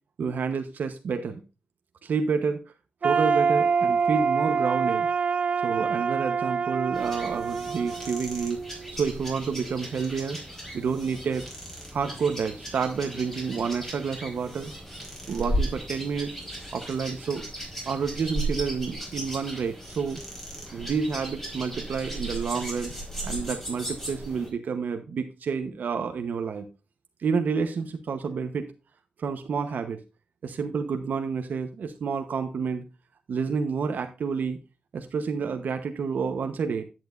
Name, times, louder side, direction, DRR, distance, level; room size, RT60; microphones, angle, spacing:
voice 1, 0.2-1.4 2.0-2.6 3.0-5.1 5.6-8.6 8.9-10.4 10.7-11.4 11.9-14.7 15.3-16.3 16.7-17.4 17.9-20.2 20.7-22.9 23.2-26.7 27.2-28.7 29.2-30.0 30.4-32.8 33.3-34.6 34.9-36.8, right 5 dB, 65° right, 6 dB, 1.0 m, -29 dB
sound 1, 3.0-8.9, right 5 dB, 40° right, 0.4 m, -26 dB
sound 2, 6.9-24.5, right 1 dB, 10° left, 4.6 m, -36 dB
10.5 x 9.0 x 2.5 m, 0.30 s
wide cardioid pair, 145°, 3 cm